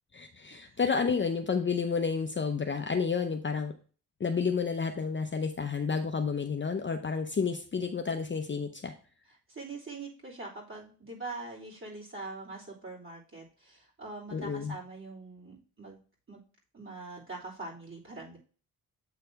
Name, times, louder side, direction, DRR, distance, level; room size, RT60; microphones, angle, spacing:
voice 1, 0.1-3.7 4.2-8.9 14.3-14.8, left 5 dB, 30° left, 5 dB, 0.7 m, -30 dB
voice 2, 9.5-16.0 16.3-16.4 16.7-18.4, right 3 dB, 30° right, -4 dB, 3.3 m, -43 dB
7.9 x 3.3 x 4.6 m, 0.38 s
cardioid pair, 75°, 40 cm